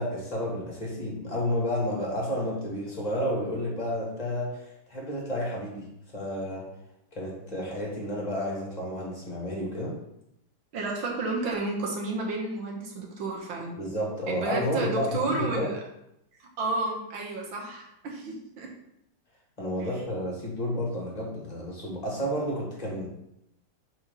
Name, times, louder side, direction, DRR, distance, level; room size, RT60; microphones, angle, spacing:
voice 1, 0.0-5.9 6.1-6.6 7.1-9.9 13.8-15.7 19.6-23.1, equal, 20° left, -3 dB, 1.7 m, -31 dB
voice 2, 10.7-13.7 14.3-15.8 16.4-18.7 19.8-19.9, right 3 dB, 80° right, -1 dB, 2.0 m, -31 dB
4.4 x 4.2 x 5.4 m, 0.80 s
omnidirectional pair, 2.2 m